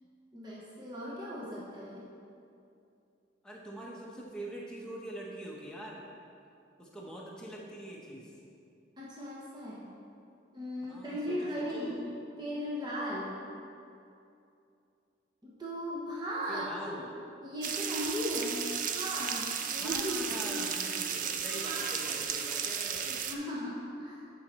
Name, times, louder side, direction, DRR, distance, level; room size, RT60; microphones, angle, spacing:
voice 1, 0.3-2.0 9.0-9.9 10.5-12.0 12.4-13.4 15.4-17.0 17.4-20.6 21.5-21.9 23.1-24.3, equal, 20° right, -6 dB, 1.0 m, -37 dB
voice 2, 3.4-6.0 6.8-8.3 10.9-12.1 16.5-17.2 19.7-23.2, right 1 dB, 5° left, -4 dB, 0.9 m, -44 dB
sound 1, 17.6-23.3, right 7 dB, 45° right, 0.4 m, -34 dB
9.5 x 5.7 x 4.2 m, 2.6 s
head